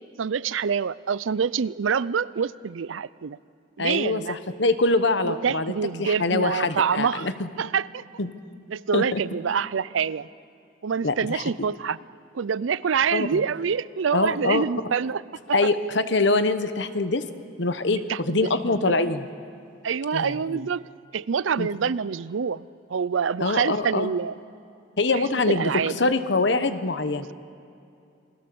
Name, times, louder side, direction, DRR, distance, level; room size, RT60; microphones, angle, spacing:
voice 1, 0.2-3.4 3.8-4.4 5.2-7.3 7.6-8.0 8.7-10.3 10.8-12.0 12.3-15.2 15.5-15.7 18.1-19.0 19.8-20.8 21.1-22.6 22.9-24.3 25.1-26.0, right 6 dB, 85° right, 19 dB, 0.5 m, -26 dB
voice 2, 3.8-5.7 6.0-7.3 8.2-8.3 8.9-9.2 11.0-11.4 13.1-13.4 14.1-14.6 15.5-17.2 17.6-19.2 20.1-20.6 21.6-21.7 23.4-24.1 25.0-27.3, left 3 dB, 65° left, 11 dB, 1.2 m, -24 dB
28.5 x 20.5 x 7.0 m, 2.5 s
head